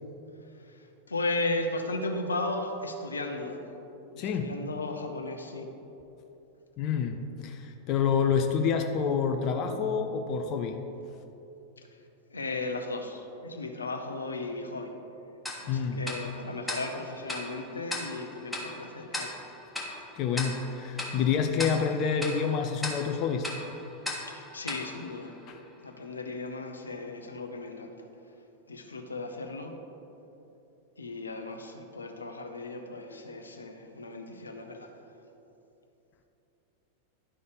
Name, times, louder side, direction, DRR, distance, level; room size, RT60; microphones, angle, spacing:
voice 1, 1.1-3.6 4.1-5.7 12.3-14.9 15.6-19.3 24.3-25.3 25.8-28.0 28.7-29.7 31.0-34.9, left 2 dB, 75° left, 5 dB, 0.8 m, -35 dB
voice 2, 4.2-4.6 6.8-7.2 7.4-10.8 15.7-16.0 20.2-23.5 25.5-25.6, left 6 dB, 35° left, 5 dB, 0.6 m, -28 dB
Tick-tock, 15.5-25.9, left 1 dB, 5° left, 1.5 m, -39 dB
11.5 x 5.4 x 5.1 m, 2.9 s
figure-of-eight pair, 90°, 0 cm